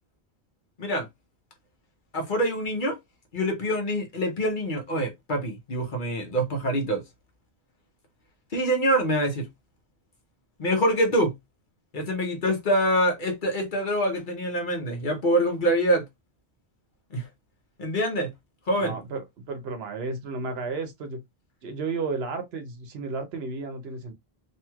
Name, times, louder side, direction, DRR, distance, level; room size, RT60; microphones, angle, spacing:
voice 1, 2.1-3.0 3.3-7.0 8.5-9.5 10.6-11.3 11.9-16.0 17.1-17.3 17.8-18.3 18.7-19.0, equal, 50° left, 0.9 m, -25 dB
voice 2, 18.8-21.2 21.6-24.1, right 4 dB, 70° right, 0.9 m, -33 dB
3.0 x 2.7 x 2.3 m
omnidirectional pair, 1.1 m